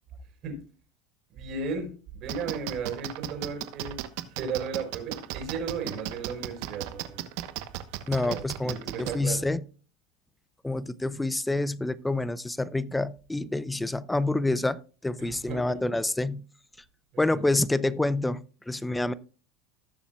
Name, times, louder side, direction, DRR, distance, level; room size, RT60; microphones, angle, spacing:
voice 1, 1.3-4.0 4.3-7.2 8.2-9.5 15.2-15.8 17.1-17.5, right 5 dB, 50° right, 3 dB, 4.8 m, -35 dB
sound 1, 2.3-9.1, right 15 dB, 70° right, 1.0 m, -35 dB
voice 2, 8.1-9.6 10.6-16.4 17.2-19.1, left 2 dB, 5° left, 16 dB, 0.6 m, -28 dB
18.5 x 7.0 x 2.4 m, 0.38 s
supercardioid pair, 115°, 0 cm